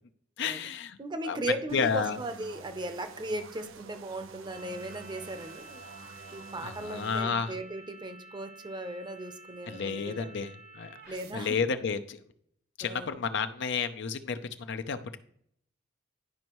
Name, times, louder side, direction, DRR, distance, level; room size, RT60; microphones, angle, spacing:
voice 1, 0.4-1.0 1.2-1.4 1.7-2.2 6.6-7.5 9.7-12.2 12.8-15.2, left 5 dB, 65° left, 10 dB, 0.5 m, -31 dB
voice 2, 1.0-5.8 6.3-10.4 11.1-11.6 12.8-13.2, right 1 dB, 25° right, 9 dB, 0.7 m, -37 dB
sound 1, 1.7-7.2, right 4 dB, 85° right, 0.7 m, -48 dB
sound 2, 4.5-11.3, right 2 dB, 55° right, 1.1 m, -51 dB
11.0 x 5.3 x 3.0 m, 0.66 s
head